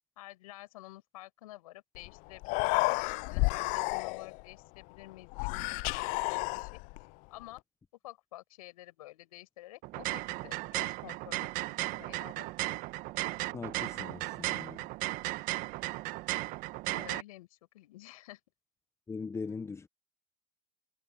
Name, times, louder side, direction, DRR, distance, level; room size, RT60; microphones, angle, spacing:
voice 1, 0.2-3.0 3.3-5.8 6.2-6.8 7.3-7.6 8.0-12.5 16.9-18.4, left 17 dB, 75° left, 7.9 m, -50 dB
Human voice, 1.9-2.1 2.3-4.4 5.3-7.0, left 27 dB, 45° left, 0.4 m, -31 dB
sound 1, 9.8-17.2, right 20 dB, 50° right, 1.1 m, -35 dB
voice 2, 13.5-14.9 19.1-19.9, left 4 dB, 15° left, 1.0 m, -40 dB
hypercardioid pair, 110°, 19 cm